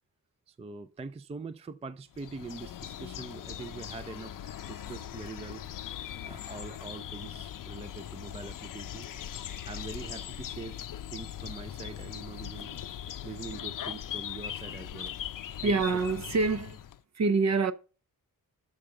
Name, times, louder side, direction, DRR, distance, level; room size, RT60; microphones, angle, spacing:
voice 1, 0.5-5.6 6.2-9.2 9.7-10.8 11.1-12.8 13.2-15.1 15.6-15.8, right 4 dB, 20° right, 0.4 m, -43 dB
sound 1, 2.1-17.0, left 10 dB, 60° left, 0.5 m, -40 dB
voice 2, 15.6-16.8 17.1-17.7, right 4 dB, 50° right, 0.7 m, -26 dB
6.6 x 5.0 x 6.8 m
wide cardioid pair, 155°, 36 cm